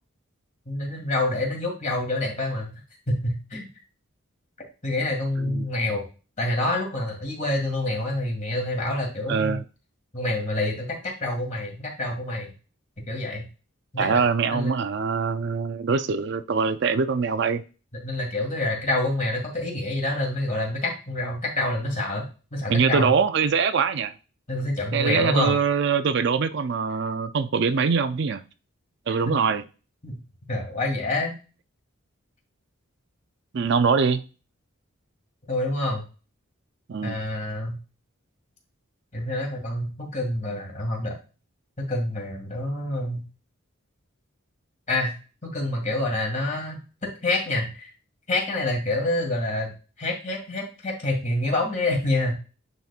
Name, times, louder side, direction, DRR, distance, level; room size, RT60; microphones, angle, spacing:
voice 1, 0.7-2.7 3.1-3.7 4.8-6.0 6.4-9.6 10.1-12.5 13.0-13.4 13.9-14.2 14.5-14.7 18.0-22.3 22.5-23.1 24.5-25.6 30.0-30.2 30.5-31.3 35.5-36.0 37.0-37.8 39.1-41.1 41.8-43.2 44.9-45.1 45.4-46.8 47.2-47.9 48.3-49.7 50.0-52.3, left 2 dB, 35° left, 2.1 m, -27 dB
voice 2, 9.3-9.6 14.0-17.6 22.7-24.1 24.9-28.4 29.1-29.6 33.5-34.2 36.9-37.2, right 5 dB, 55° right, 0.4 m, -23 dB
9.2 x 4.2 x 2.4 m
head